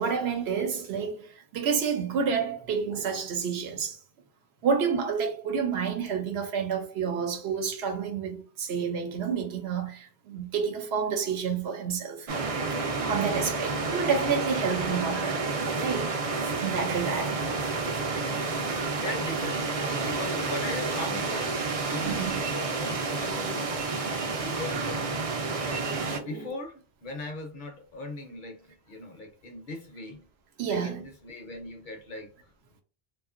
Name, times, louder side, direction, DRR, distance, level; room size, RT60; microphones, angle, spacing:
voice 1, 0.0-4.0 4.6-12.3 13.1-16.1 16.6-17.4 22.0-22.4 25.6-26.5 30.6-31.0, right 6 dB, 85° right, 0.9 m, -29 dB
sound 1, 12.3-26.2, right 3 dB, 45° right, 0.5 m, -30 dB
voice 2, 19.0-22.3 22.8-25.1 26.2-30.2 30.7-32.3, left 2 dB, 55° left, 0.6 m, -39 dB
2.8 x 2.3 x 2.4 m
omnidirectional pair, 1.1 m